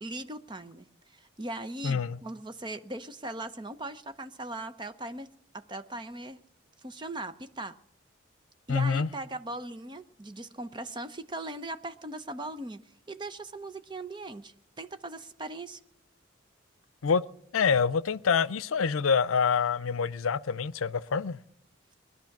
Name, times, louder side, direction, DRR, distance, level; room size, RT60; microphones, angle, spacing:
voice 1, 0.0-5.3 5.5-6.4 6.8-7.8 8.7-12.8 13.1-15.8, right 2 dB, 20° right, 0.7 m, -39 dB
voice 2, 1.8-2.2 8.7-9.1 17.0-17.2 17.5-21.4, left 6 dB, 85° left, 0.5 m, -26 dB
20.5 x 11.0 x 5.9 m
head